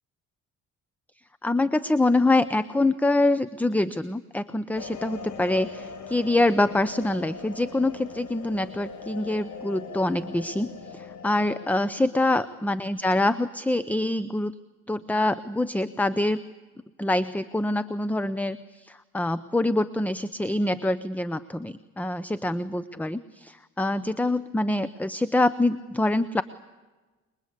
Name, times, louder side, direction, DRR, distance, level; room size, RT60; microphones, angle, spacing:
voice 1, 1.4-14.5 14.9-16.4 17.0-26.4, left 2 dB, 5° left, 15 dB, 0.7 m, -25 dB
sound 1, 4.7-11.8, left 4 dB, 70° left, 3.3 m, -41 dB
27.0 x 22.0 x 8.3 m, 1.2 s
cardioid pair, 90°, 30 cm